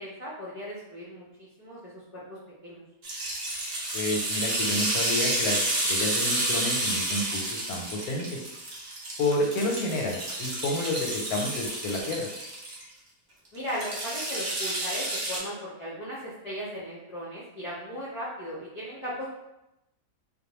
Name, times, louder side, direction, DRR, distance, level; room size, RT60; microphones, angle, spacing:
voice 1, 0.0-2.4 2.6-2.8 13.5-19.3, equal, 50° left, -9 dB, 0.4 m, -37 dB
sound 1, 3.0-12.8 13.7-15.4, right 1 dB, 55° right, 0.5 m, -30 dB
voice 2, 3.9-8.5 9.2-12.3, left 2 dB, 90° left, 1 dB, 1.1 m, -30 dB
2.5 x 2.1 x 2.9 m, 0.90 s
omnidirectional pair, 1.6 m